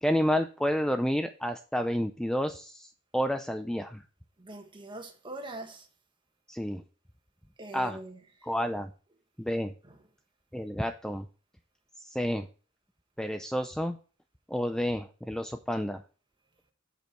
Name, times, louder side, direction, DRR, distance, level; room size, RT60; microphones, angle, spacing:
voice 1, 0.0-4.0 6.5-6.8 7.7-8.0 8.4-8.9 9.4-9.7 10.5-11.3 12.0-12.5 13.2-14.0 14.5-16.0, equal, 5° left, 0.5 m, -30 dB
voice 2, 4.4-5.9 7.6-8.2 9.8-10.0, right 2 dB, 25° right, 1.5 m, -42 dB
8.2 x 6.8 x 4.5 m
head